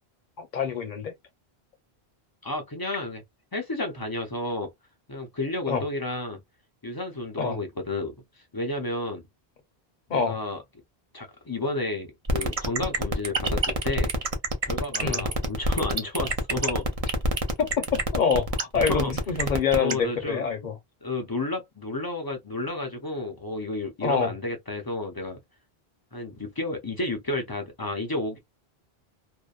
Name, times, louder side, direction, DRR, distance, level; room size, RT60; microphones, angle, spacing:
voice 1, 0.4-1.1 5.7-5.8 7.4-7.6 10.1-10.4 15.0-15.2 17.6-17.8 18.1-20.8 24.0-24.3, left 6 dB, 50° left, 0.8 m, -26 dB
voice 2, 2.4-3.2 3.5-4.7 5.1-6.4 6.8-8.1 8.5-9.2 10.1-10.6 11.1-14.1 14.6-16.9 18.7-19.1 19.7-20.4 21.0-25.4 26.1-28.4, left 2 dB, 30° left, 0.4 m, -31 dB
sound 1, 12.3-19.9, right 4 dB, 40° right, 0.6 m, -27 dB
2.7 x 2.1 x 2.3 m
omnidirectional pair, 1.1 m